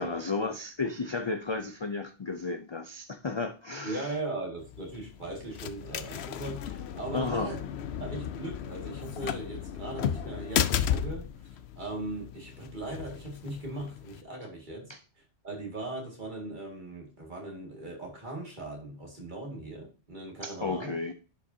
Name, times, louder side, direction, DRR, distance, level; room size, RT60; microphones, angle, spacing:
voice 1, 0.0-4.1 7.1-7.5 14.9-15.0 20.4-21.1, left 3 dB, 40° left, 0.4 m, -33 dB
voice 2, 3.8-7.6 8.0-14.9 15.2-21.0, right 2 dB, 45° right, 2.3 m, -39 dB
sound 1, 4.6-14.2, left 9 dB, 70° left, 0.8 m, -34 dB
10.5 x 5.2 x 2.7 m
omnidirectional pair, 1.2 m